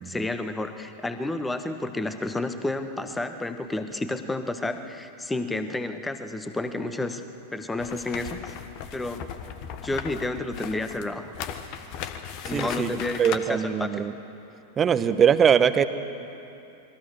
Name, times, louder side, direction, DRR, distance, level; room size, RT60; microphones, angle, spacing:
voice 1, 0.0-7.2 7.5-8.6 8.9-9.2 9.8-11.4 12.4-14.0, left 2 dB, 10° left, 9 dB, 1.5 m, -31 dB
sound 1, 7.8-13.4, left 8 dB, 40° left, 1.5 m, -37 dB
voice 2, 12.5-12.9 13.2-14.1 14.8-15.8, right 8 dB, 25° right, 12 dB, 1.1 m, -21 dB
28.5 x 21.5 x 6.7 m, 2.7 s
figure-of-eight pair, 90°, 0 cm